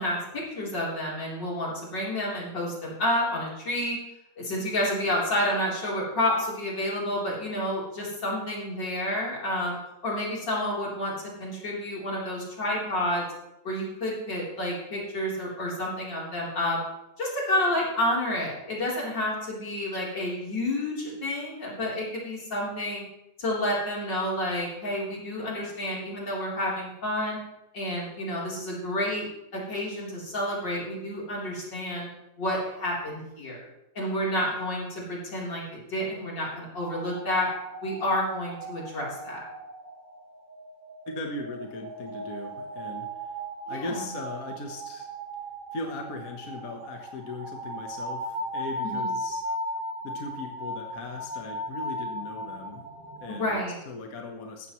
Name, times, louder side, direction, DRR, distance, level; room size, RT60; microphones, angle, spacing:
voice 1, 0.0-4.0 4.4-9.8 10.0-13.2 13.6-16.8 17.2-23.0 23.4-27.4 27.7-29.3 29.5-32.1 32.4-33.6 34.0-37.5 37.8-39.5 43.7-44.1 48.8-49.1 53.3-53.8, left 1 dB, 85° left, -4 dB, 4.4 m, -29 dB
sound 1, 36.7-53.5, right 1 dB, 70° right, 2.8 m, -37 dB
voice 2, 41.1-43.1 43.7-45.1 45.7-49.5 50.0-52.9 53.2-53.6 53.9-54.7, left 3 dB, 55° left, 2 dB, 1.6 m, -38 dB
15.0 x 13.0 x 3.1 m, 0.91 s
omnidirectional pair, 1.9 m